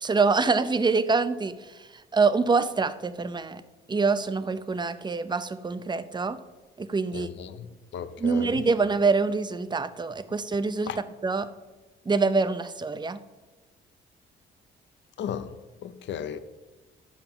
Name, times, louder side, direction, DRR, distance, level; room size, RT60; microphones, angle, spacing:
voice 1, 0.0-3.6 3.9-6.4 6.8-7.3 8.2-10.9 11.2-11.5 12.1-13.2, right 4 dB, 20° right, 0.6 m, -25 dB
voice 2, 7.1-8.6 10.9-11.0 15.2-16.4, left 8 dB, 65° left, 0.7 m, -35 dB
11.0 x 5.4 x 5.8 m
cardioid pair, 90°, 20 cm